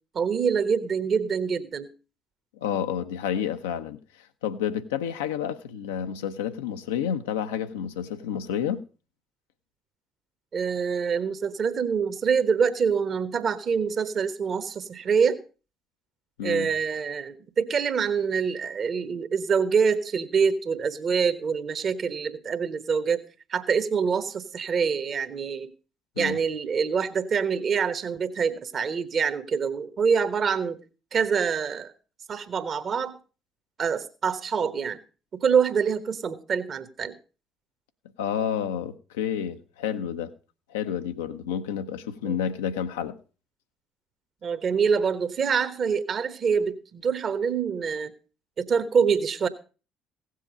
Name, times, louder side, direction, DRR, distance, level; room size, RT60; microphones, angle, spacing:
voice 1, 0.1-1.9 10.5-15.4 16.4-23.2 23.5-25.7 26.2-30.8 31.1-31.9 32.3-33.1 33.8-35.0 35.3-37.1 42.2-42.4 44.4-48.1 48.6-49.5, right 6 dB, 45° right, 1.1 m, -25 dB
voice 2, 2.6-4.0 4.4-8.8 16.4-16.7 26.2-26.4 38.2-40.3 40.7-43.2, left 8 dB, 80° left, 0.7 m, -30 dB
16.0 x 7.5 x 5.0 m
figure-of-eight pair, 50°, 0 cm